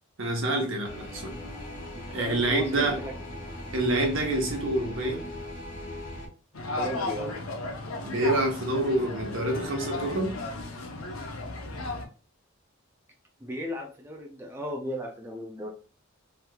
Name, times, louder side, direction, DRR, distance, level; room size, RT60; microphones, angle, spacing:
voice 1, 0.2-1.4 2.1-3.0 3.7-5.3 8.0-10.3, right 1 dB, 70° right, 0.9 m, -27 dB
sound 1, 0.8-6.3, left 1 dB, 40° left, 1.0 m, -39 dB
voice 2, 1.9-3.1 6.8-7.4 13.4-15.7, equal, 10° right, 0.4 m, -36 dB
sound 2, 6.5-12.0, left 2 dB, 85° left, 0.7 m, -35 dB
3.3 x 3.0 x 2.2 m
head